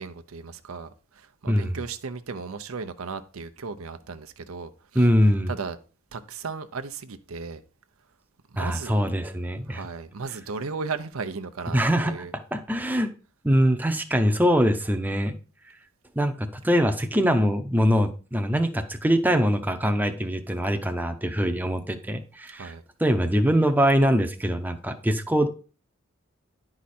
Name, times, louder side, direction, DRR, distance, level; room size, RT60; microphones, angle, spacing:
voice 1, 0.0-5.1 5.5-5.8 6.1-7.6 8.5-9.0 9.3-12.3 22.5-22.8, right 4 dB, 90° right, 0.7 m, -36 dB
voice 2, 1.5-1.8 4.9-5.5 8.6-9.8 11.7-12.1 12.5-13.1 13.4-15.4 16.2-22.7 23.0-25.5, equal, 10° right, 0.7 m, -23 dB
10.5 x 4.9 x 4.3 m
head